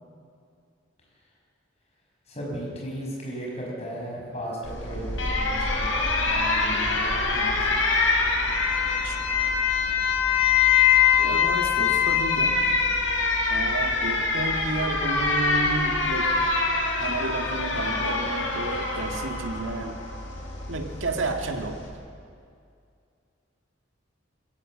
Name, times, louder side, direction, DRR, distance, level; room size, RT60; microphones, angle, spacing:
voice 1, 2.3-5.1 5.3-8.0, equal, 35° left, -3 dB, 5.9 m, -36 dB
Alarm, 4.6-21.9, left 5 dB, 80° left, 4.5 m, -24 dB
voice 2, 11.2-12.8 13.5-16.3 17.0-20.0 20.7-21.9, right 2 dB, 80° right, 4 dB, 1.7 m, -31 dB
21.5 x 17.5 x 7.6 m, 2.4 s
head